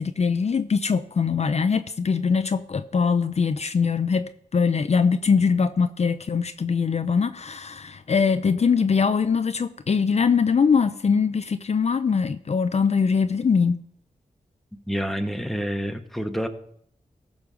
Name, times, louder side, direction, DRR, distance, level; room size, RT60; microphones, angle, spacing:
voice 1, 0.0-13.8, left 5 dB, 50° left, 11 dB, 0.5 m, -22 dB
voice 2, 14.9-16.5, equal, ahead, 6 dB, 1.3 m, -28 dB
14.5 x 5.3 x 6.3 m, 0.67 s
cardioid pair, 50°, 14 cm